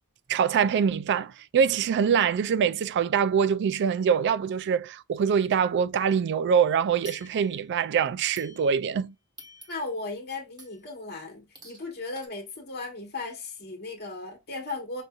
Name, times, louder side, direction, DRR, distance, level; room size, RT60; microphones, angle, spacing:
voice 1, 0.3-9.1, right 7 dB, 50° right, 0.3 m, -24 dB
sound 1, 7.1-7.8 8.4-9.0 9.4-10.1 10.6-10.9 11.6-11.9 12.2-12.3, equal, 20° right, 1.3 m, -49 dB
voice 2, 9.7-15.0, left 3 dB, 45° left, 1.4 m, -36 dB
5.4 x 2.6 x 2.3 m
head